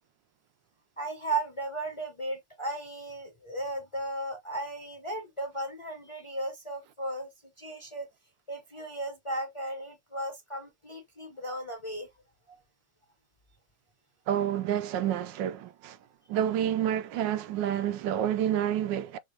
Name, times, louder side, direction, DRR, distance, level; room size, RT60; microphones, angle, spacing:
voice 1, 1.0-7.3 7.6-8.1 8.5-12.1 12.5-12.6, right 2 dB, 25° left, 0.8 m, -35 dB
voice 2, 14.3-16.0 16.3-19.2, right 10 dB, 80° right, 1.3 m, -29 dB
5.9 x 2.4 x 3.2 m
omnidirectional pair, 2.0 m